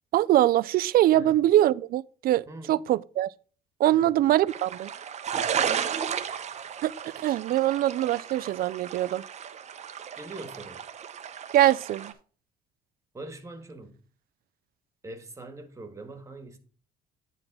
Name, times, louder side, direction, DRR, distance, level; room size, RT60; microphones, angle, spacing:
voice 1, 0.1-3.3 3.8-4.9 6.8-9.2 11.5-12.1, right 13 dB, 60° right, 0.4 m, -23 dB
voice 2, 2.5-2.8 3.9-4.2 5.3-5.6 10.1-10.8 13.1-14.0 15.0-16.6, right 2 dB, 20° right, 1.7 m, -43 dB
sound 1, 4.5-12.1, right 8 dB, 40° right, 0.8 m, -34 dB
9.7 x 3.8 x 6.0 m
cardioid pair, 110°, 17 cm